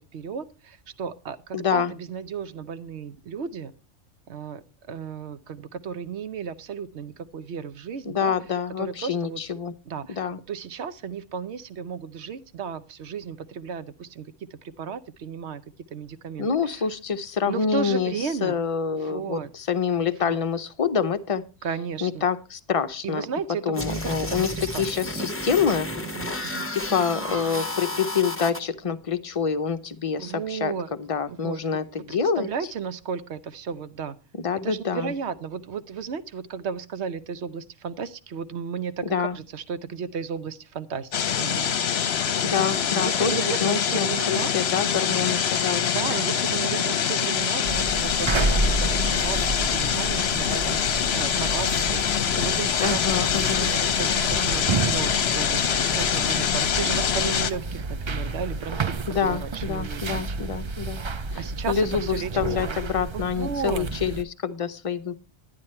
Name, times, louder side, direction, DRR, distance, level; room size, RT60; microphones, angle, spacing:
voice 1, 0.0-3.7 4.3-8.3 8.8-9.4 9.8-15.6 15.9-16.9 17.5-18.6 18.9-19.5 20.1-20.4 21.6-22.2 23.0-25.3 26.0-26.6 27.7-27.8 30.2-30.9 31.3-34.2 34.6-41.8 42.9-44.5 45.9-58.9 59.2-60.4 61.3-62.9 63.1-63.9, right 6 dB, 65° right, 13 dB, 1.0 m, -34 dB
voice 2, 1.5-1.9 8.1-9.7 10.1-10.4 16.4-18.1 18.4-21.4 22.0-23.3 23.7-24.5 24.8-25.9 26.7-30.7 31.0-32.5 34.4-35.1 39.1-39.4 42.4-46.0 52.8-53.7 59.1-61.0 61.7-65.1, left 6 dB, 35° left, 10 dB, 0.6 m, -26 dB
sound 1, 23.7-28.6, left 1 dB, 10° left, 0.9 m, -32 dB
sound 2, 41.1-57.5, left 8 dB, 60° left, 1.0 m, -24 dB
sound 3, 47.6-64.2, right 3 dB, 45° right, 0.3 m, -31 dB
11.0 x 9.7 x 4.3 m, 0.32 s
omnidirectional pair, 1.3 m